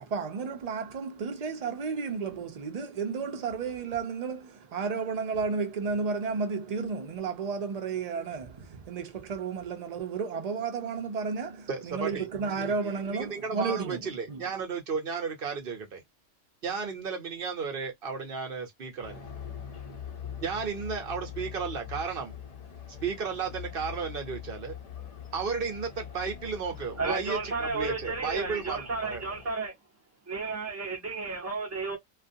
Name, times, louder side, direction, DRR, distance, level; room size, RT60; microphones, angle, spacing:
voice 1, 0.0-14.4, right 5 dB, 90° right, 0.3 m, -32 dB
voice 2, 11.7-12.3 12.6-16.0 16.6-19.3 20.4-22.3 23.0-24.8 25.3-29.2, right 5 dB, 55° right, 0.8 m, -34 dB
sound 1, 19.0-29.5, left 8 dB, 50° left, 0.5 m, -43 dB
voice 3, 27.0-29.7 30.3-32.0, right 4 dB, 15° right, 0.7 m, -32 dB
2.4 x 2.2 x 2.6 m
omnidirectional pair, 1.3 m